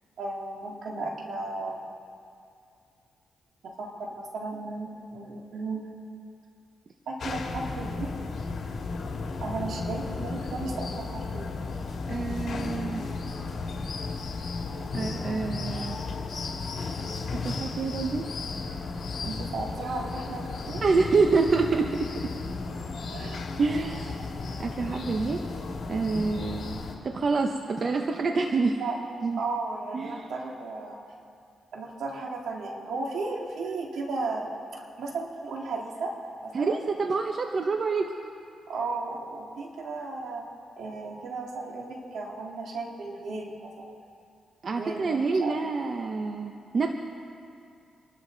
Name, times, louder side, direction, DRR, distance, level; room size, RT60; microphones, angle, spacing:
voice 1, 0.2-1.9 3.8-5.8 7.1-8.1 9.4-11.6 19.2-20.8 23.1-23.4 28.8-29.0 29.4-31.0 31.7-36.1 36.4-36.5 38.7-40.4 40.8-43.9 44.7-45.6, right 3 dB, 80° right, -1 dB, 2.6 m, -35 dB
sound 1, 7.2-26.9, left 3 dB, 60° left, 2.4 m, -34 dB
voice 2, 12.1-13.0 14.9-16.0 17.4-18.2 20.8-22.1 23.6-24.1 24.6-25.4 25.9-28.8 29.2-29.4 29.9-30.3 36.5-38.1 44.6-46.9, right 4 dB, 50° right, 4 dB, 0.9 m, -27 dB
26.5 x 12.0 x 4.1 m, 2.5 s
cardioid pair, 80°, 0 cm